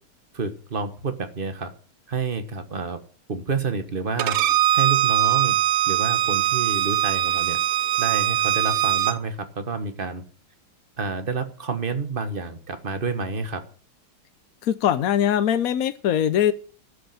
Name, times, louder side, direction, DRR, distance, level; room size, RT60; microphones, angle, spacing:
voice 1, 0.3-1.7 2.1-3.0 3.3-4.4 4.7-5.6 5.9-7.6 8.0-10.2 11.0-13.6, right 4 dB, 30° right, 1.1 m, -29 dB
Bowed string instrument, 4.2-9.2, right 11 dB, 70° right, 0.8 m, -21 dB
voice 2, 14.6-16.5, left 10 dB, 75° left, 0.8 m, -21 dB
13.0 x 6.2 x 9.1 m
omnidirectional pair, 2.3 m